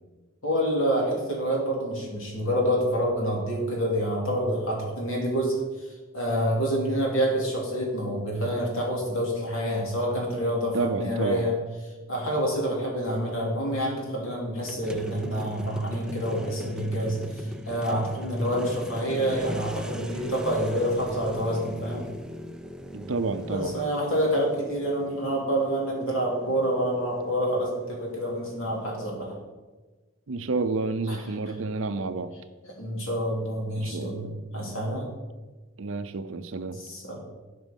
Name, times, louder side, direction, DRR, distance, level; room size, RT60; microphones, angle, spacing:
voice 1, 0.4-5.5 5.8-11.6 12.1-22.0 23.5-29.4 31.1-31.2 32.8-35.1 36.8-37.2, equal, 75° left, -2 dB, 3.1 m, -27 dB
voice 2, 10.7-11.5 22.9-23.7 30.3-32.3 33.8-34.4 35.8-36.8, right 3 dB, 65° right, 11 dB, 0.6 m, -30 dB
sound 1, 14.6-28.9, equal, 5° right, 0.4 m, -40 dB
11.0 x 5.3 x 5.3 m, 1.2 s
head